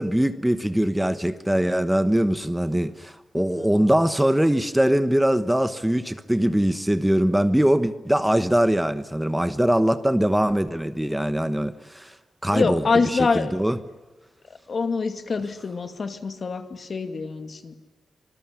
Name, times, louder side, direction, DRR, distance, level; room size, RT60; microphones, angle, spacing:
voice 1, 0.0-12.1 12.4-12.8 13.1-13.8, right 1 dB, 5° right, 1.2 m, -22 dB
voice 2, 3.4-3.9 12.5-13.6 14.5-17.7, left 4 dB, 55° left, 2.4 m, -26 dB
26.0 x 20.0 x 9.9 m
cardioid pair, 90°, 0 cm